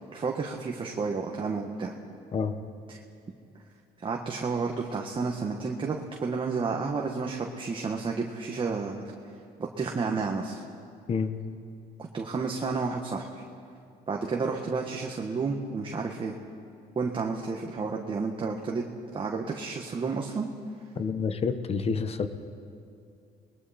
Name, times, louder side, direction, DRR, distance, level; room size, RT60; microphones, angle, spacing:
voice 1, 0.1-1.9 2.9-3.0 4.0-9.0 9.6-10.6 12.1-13.3 14.1-16.3 16.9-18.8 19.1-20.5, right 4 dB, 30° right, 0 dB, 1.6 m, -31 dB
voice 2, 20.9-22.3, left 5 dB, 35° left, 9 dB, 1.3 m, -28 dB
29.5 x 21.0 x 4.4 m, 2.5 s
cardioid pair, 110°, 17 cm